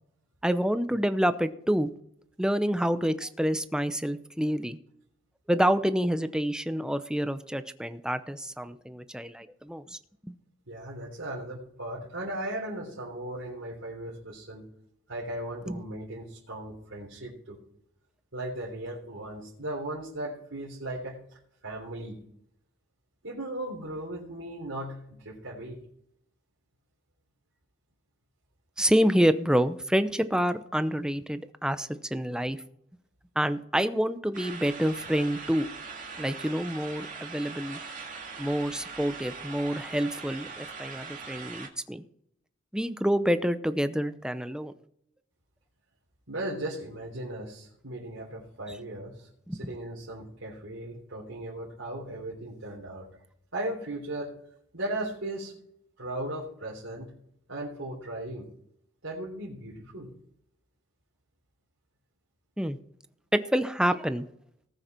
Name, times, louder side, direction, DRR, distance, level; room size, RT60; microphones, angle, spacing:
voice 1, 0.4-1.9 2.4-4.8 5.5-10.0 10.2-10.3 15.7-15.8 28.8-32.6 33.4-35.7 36.2-37.8 38.4-42.0 42.7-44.7 49.5-49.6 62.6-62.8 63.3-64.3, equal, 5° right, 11 dB, 0.7 m, -27 dB
voice 2, 10.7-14.6 15.1-17.6 18.3-21.2 21.6-22.2 23.2-25.8 46.3-49.3 49.6-53.1 53.5-54.3 54.7-55.6 56.0-57.1 57.5-58.5 59.0-60.1, right 1 dB, 80° right, -6 dB, 3.5 m, -37 dB
sound 1, 34.3-41.7, right 5 dB, 45° right, 2.0 m, -41 dB
19.0 x 6.4 x 4.4 m, 0.70 s
head